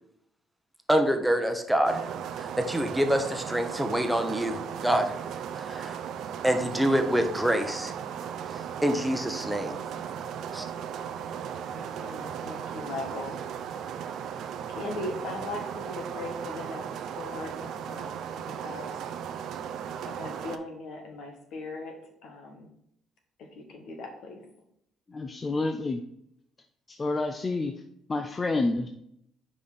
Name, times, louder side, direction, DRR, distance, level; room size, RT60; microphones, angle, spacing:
voice 1, 0.9-2.1 2.4-5.2 5.6-6.0 6.4-7.9 8.8-9.8 10.5-10.7, equal, 5° right, 5 dB, 1.0 m, -26 dB
sound 1, 1.9-20.6, right 8 dB, 70° right, 0.5 m, -36 dB
voice 2, 11.7-13.4 14.7-16.9 17.2-19.0 20.0-22.7 23.4-24.4, left 2 dB, 75° left, 3 dB, 1.6 m, -39 dB
voice 3, 25.1-26.0 26.9-27.7 28.1-28.9, left 2 dB, 30° left, 5 dB, 0.6 m, -28 dB
5.4 x 4.9 x 4.1 m, 0.73 s
supercardioid pair, 75°, 0 cm